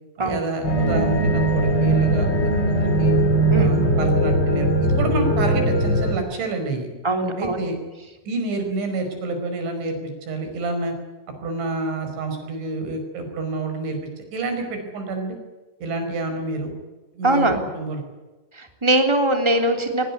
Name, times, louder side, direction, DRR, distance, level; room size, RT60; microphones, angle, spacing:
voice 1, 0.2-2.3 2.6-3.2 3.5-6.9 7.4-7.8 8.3-10.9 11.4-14.0 14.3-15.4 15.8-16.7 17.1-18.0, right 2 dB, 85° right, 5 dB, 7.5 m, -28 dB
sound 1, 0.6-6.1, right 1 dB, 25° left, 3.2 m, -19 dB
voice 2, 3.5-3.8 7.0-7.6 17.2-17.6 18.6-20.1, right 1 dB, 5° right, 5 dB, 2.7 m, -21 dB
22.5 x 20.0 x 9.7 m, 1.2 s
omnidirectional pair, 5.1 m